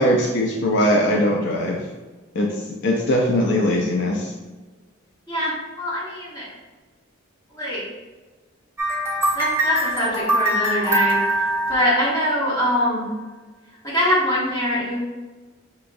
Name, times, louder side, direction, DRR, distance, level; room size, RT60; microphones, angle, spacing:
voice 1, 0.0-1.8 2.3-4.3, equal, 60° left, -1 dB, 0.4 m, -20 dB
voice 2, 5.3-6.5 7.6-7.8 9.3-11.2 11.7-13.1 13.8-15.0, equal, 20° left, -8 dB, 1.4 m, -23 dB
sound 1, 8.8-12.5, right 1 dB, 10° right, 0.8 m, -23 dB
4.6 x 2.9 x 2.6 m, 1.3 s
head